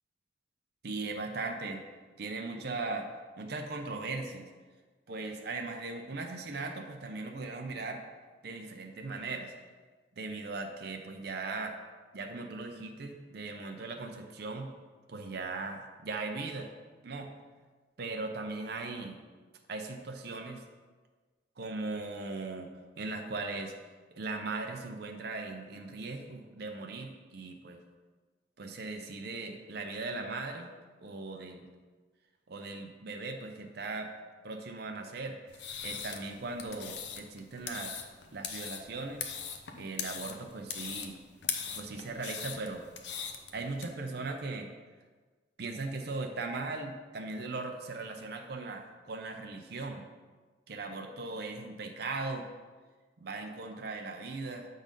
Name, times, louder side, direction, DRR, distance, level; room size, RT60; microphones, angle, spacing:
voice 1, 0.8-1.8 2.2-3.1 3.4-4.5 5.1-8.0 8.4-9.5 10.2-11.8 12.1-14.7 15.1-16.7 17.0-17.3 18.0-19.2 19.7-20.6 21.6-22.7 23.0-23.7 24.1-27.8 28.6-30.7 31.0-31.7 32.5-34.1 34.4-38.0 38.3-39.2 39.7-41.2 41.7-42.9 43.5-44.7 45.6-50.0 50.7-52.5 53.2-54.7, right 3 dB, 60° right, 3 dB, 0.6 m, -38 dB
sound 1, 35.5-43.9, left 7 dB, 70° left, 0.7 m, -40 dB
7.3 x 4.0 x 5.2 m, 1.4 s
head